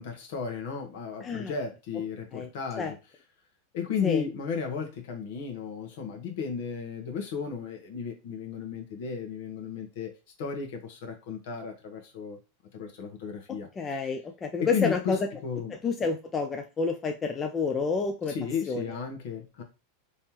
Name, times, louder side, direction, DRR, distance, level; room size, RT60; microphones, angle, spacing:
voice 1, 0.0-3.0 3.7-10.1 10.4-12.4 12.7-13.7 14.6-15.7 18.3-19.6, left 6 dB, 65° left, 3 dB, 1.2 m, -34 dB
voice 2, 1.2-1.5 2.3-2.5 2.8-2.9 4.0-4.2 13.8-15.2 15.8-18.4 18.7-18.8, left 4 dB, 25° left, 4 dB, 0.5 m, -29 dB
3.4 x 3.0 x 2.9 m, 0.30 s
hypercardioid pair, 105°, 0 cm